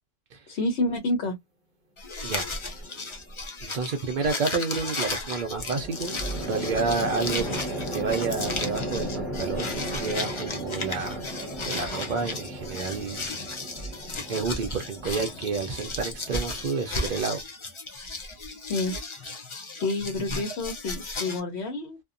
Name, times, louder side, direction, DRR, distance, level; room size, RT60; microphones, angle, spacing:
voice 1, 0.5-1.4 18.7-18.9 19.2-19.4 19.7-22.0, left 2 dB, 65° left, 1.0 m, -29 dB
sound 1, 2.0-21.4, left 3 dB, 45° left, 0.4 m, -35 dB
sound 2, 2.5-3.1 5.6-17.0, right 1 dB, ahead, 0.9 m, -36 dB
voice 2, 3.6-7.6 7.9-11.3 11.6-13.3 13.8-13.9 14.3-17.4, right 4 dB, 60° right, 0.5 m, -30 dB
2.7 x 2.1 x 2.4 m
omnidirectional pair, 1.3 m